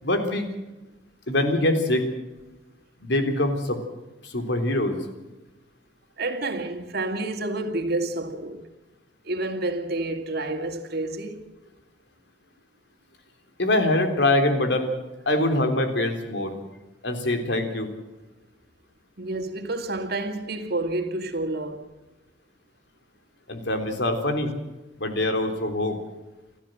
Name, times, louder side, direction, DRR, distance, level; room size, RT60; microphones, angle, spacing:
voice 1, 0.0-0.5 1.3-2.1 3.0-3.8 4.2-5.0 13.6-14.9 15.3-16.6 17.0-17.9 23.5-24.5 25.0-26.0, left 1 dB, 70° left, 3.7 m, -24 dB
voice 2, 6.2-8.7 9.2-11.5 19.2-21.9, right 2 dB, 60° right, 2.4 m, -29 dB
29.0 x 13.5 x 7.9 m
head